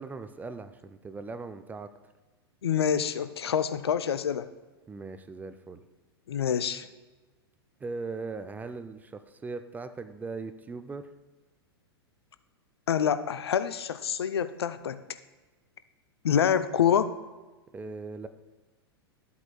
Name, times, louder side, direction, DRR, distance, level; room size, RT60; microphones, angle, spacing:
voice 1, 0.0-1.9 4.9-5.8 7.8-11.1 17.7-18.3, right 4 dB, 10° right, 10 dB, 0.5 m, -39 dB
voice 2, 2.6-4.5 6.3-6.9 12.9-15.0 16.2-17.1, left 8 dB, 75° left, 12 dB, 0.5 m, -26 dB
13.0 x 8.2 x 2.3 m, 1.2 s
figure-of-eight pair, 100°, 13 cm